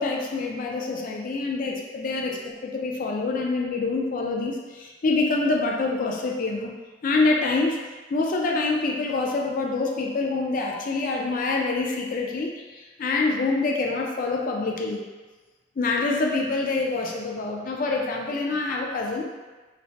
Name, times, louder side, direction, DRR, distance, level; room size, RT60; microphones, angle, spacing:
voice 1, 0.0-6.7 7.0-7.8 8.1-15.0 15.8-19.3, left 3 dB, 50° left, 0 dB, 0.4 m, -26 dB
3.1 x 2.1 x 2.7 m, 1.3 s
head